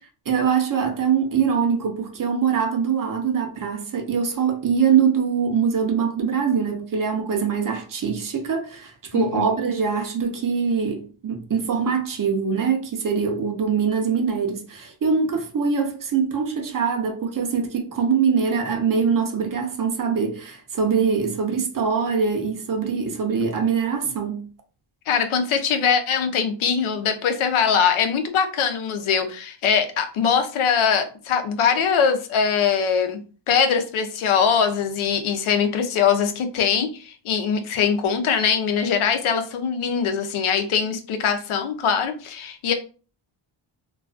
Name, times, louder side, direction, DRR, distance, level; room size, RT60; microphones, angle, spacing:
voice 1, 0.3-24.4, right 6 dB, 45° right, 0.6 m, -23 dB
voice 2, 9.1-9.5 25.1-33.2 33.5-42.7, left 7 dB, 80° left, 0.6 m, -22 dB
2.3 x 2.3 x 2.4 m
cardioid pair, 85°, 49 cm